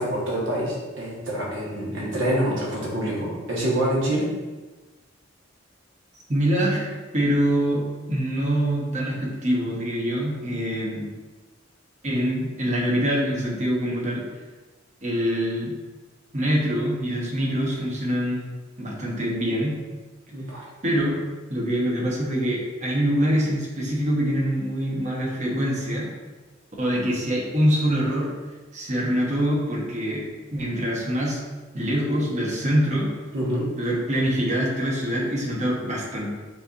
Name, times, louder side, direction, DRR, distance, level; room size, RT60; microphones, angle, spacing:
voice 1, 0.0-4.3 20.3-20.6 33.3-33.7, right 1 dB, 70° right, -4 dB, 1.4 m, -26 dB
voice 2, 6.3-11.1 12.0-14.2 15.0-15.7 16.3-18.4 18.8-19.8 20.8-21.2 21.5-26.1 26.8-28.3 28.7-30.2 30.5-31.4 31.7-33.1 33.8-36.3, equal, 40° right, -3 dB, 1.1 m, -24 dB
7.4 x 2.7 x 2.5 m, 1.2 s
head